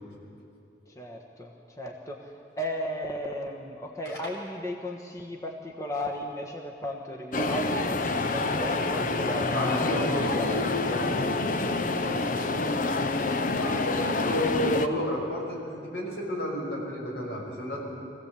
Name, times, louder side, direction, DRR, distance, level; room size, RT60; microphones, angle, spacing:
voice 1, 0.9-11.0, left 1 dB, 20° left, 0 dB, 1.3 m, -35 dB
sound 1, 7.3-14.9, left 3 dB, 50° left, 0.8 m, -27 dB
voice 2, 9.5-10.9 13.6-17.8, equal, 75° left, -2 dB, 5.8 m, -31 dB
23.0 x 16.0 x 8.3 m, 2.7 s
head